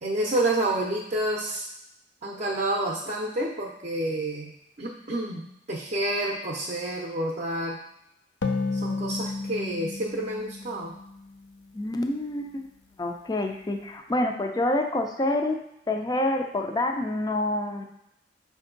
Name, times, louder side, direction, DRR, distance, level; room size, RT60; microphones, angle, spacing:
voice 1, 0.0-1.7 2.2-4.5 4.8-5.4 5.7-7.8 8.7-10.9, right 1 dB, 45° right, -2 dB, 0.6 m, -29 dB
sound 1, 8.4-11.9, left 3 dB, 75° left, 0.5 m, -32 dB
voice 2, 11.7-12.7 13.0-15.6 15.9-17.8, left 1 dB, 25° left, 4 dB, 0.4 m, -27 dB
5.1 x 2.6 x 3.8 m, 0.80 s
head